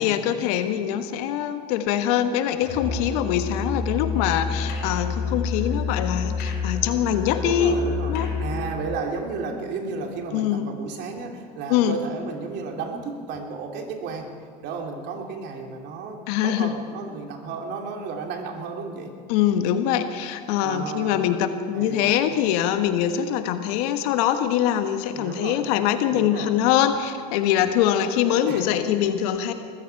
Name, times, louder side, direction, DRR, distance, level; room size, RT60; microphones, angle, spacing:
voice 1, 0.0-7.8 8.1-8.3 10.3-10.7 11.7-12.0 16.3-16.7 19.3-29.5, left 10 dB, 70° left, 8 dB, 1.3 m, -23 dB
Musical instrument, 2.6-8.9, left 4 dB, 50° left, 5.6 m, -29 dB
voice 2, 7.4-14.4 14.6-19.2 20.6-21.3 21.7-22.3 25.1-25.7 26.1-26.6 27.5-27.6 28.4-28.7, right 4 dB, 55° right, 2 dB, 2.8 m, -33 dB
21.0 x 14.5 x 4.7 m, 2.3 s
hypercardioid pair, 95°, 21 cm